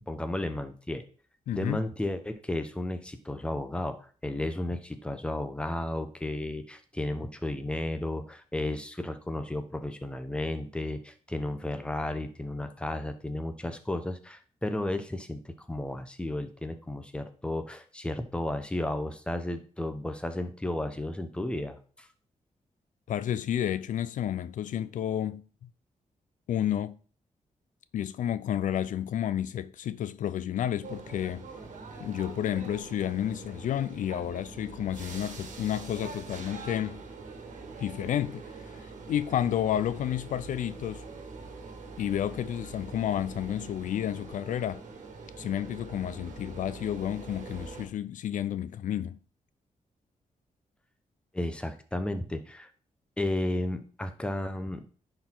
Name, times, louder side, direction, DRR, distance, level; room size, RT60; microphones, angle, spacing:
voice 1, 0.1-1.0 1.5-22.1 51.3-52.7 53.2-54.9, left 1 dB, 10° left, 0.8 m, -33 dB
voice 2, 1.5-1.8 23.1-25.7 26.5-26.9 27.9-31.5 32.0-37.0 37.8-41.0 42.0-44.8 45.4-49.2, left 10 dB, 80° left, 0.4 m, -31 dB
sound 1, 30.8-47.9, right 4 dB, 70° right, 1.6 m, -44 dB
10.0 x 4.6 x 3.8 m
wide cardioid pair, 135°, 13 cm